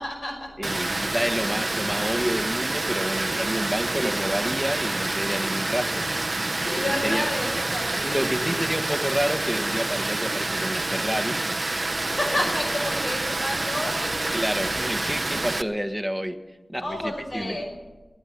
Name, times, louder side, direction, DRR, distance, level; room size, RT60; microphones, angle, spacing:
voice 1, 0.0-0.5 6.5-8.6 12.0-14.3 16.8-17.8, left 1 dB, 70° left, 0 dB, 5.6 m, -31 dB
voice 2, 0.6-6.1 7.0-7.3 8.0-11.4 14.3-16.4 16.7-17.6, equal, ahead, 7 dB, 1.4 m, -29 dB
Water, 0.6-15.6, right 2 dB, 45° right, 0.5 m, -27 dB
16.5 x 8.6 x 9.4 m, 1.2 s
cardioid pair, 40°, 0 cm